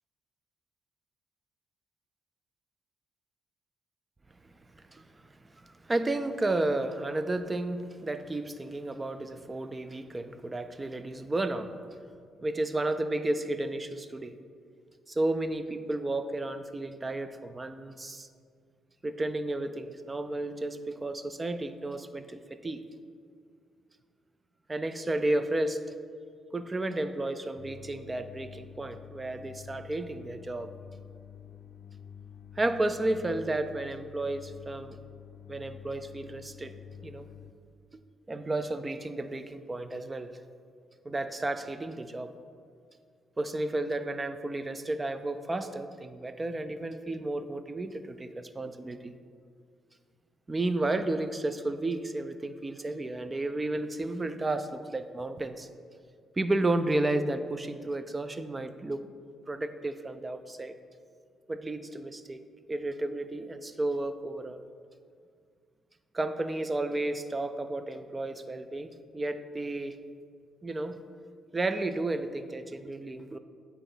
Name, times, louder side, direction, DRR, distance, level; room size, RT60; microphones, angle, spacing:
voice 1, 4.4-12.0 12.4-14.3 15.1-18.3 19.0-22.8 24.7-25.8 26.5-30.7 32.6-35.0 35.5-36.7 37.0-37.3 38.3-40.4 41.0-42.3 43.4-49.1 50.5-55.7 56.4-59.1 59.5-60.8 61.5-62.4 62.7-64.6 66.1-70.0 70.6-71.0 71.5-73.4, right 2 dB, 20° right, 10 dB, 0.4 m, -32 dB
sound 1, 27.6-37.5, left 8 dB, 75° left, 0.4 m, -49 dB
9.1 x 4.1 x 3.9 m, 2.2 s
cardioid pair, 90°, 0 cm